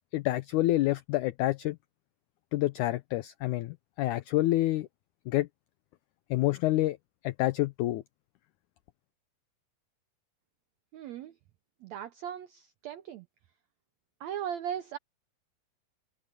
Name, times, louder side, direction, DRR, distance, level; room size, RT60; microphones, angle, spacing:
voice 1, 0.1-1.8 2.5-4.9 5.3-5.5 6.3-7.0 7.2-8.0, left 16 dB, 85° left, 1.7 m, -28 dB
voice 2, 10.9-11.3 11.8-13.2 14.2-15.0, right 9 dB, 85° right, 1.5 m, -38 dB
omnidirectional pair, 4.1 m